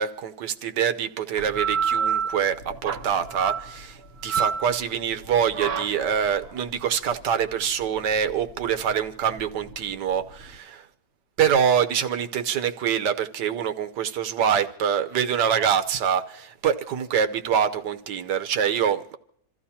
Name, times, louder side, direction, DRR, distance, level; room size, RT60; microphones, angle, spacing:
voice 1, 0.0-10.8 11.4-19.2, right 8 dB, 70° right, 1.4 m, -25 dB
sound 1, 1.4-10.6, right 6 dB, 45° right, 0.9 m, -30 dB
28.0 x 14.5 x 2.8 m
omnidirectional pair, 2.0 m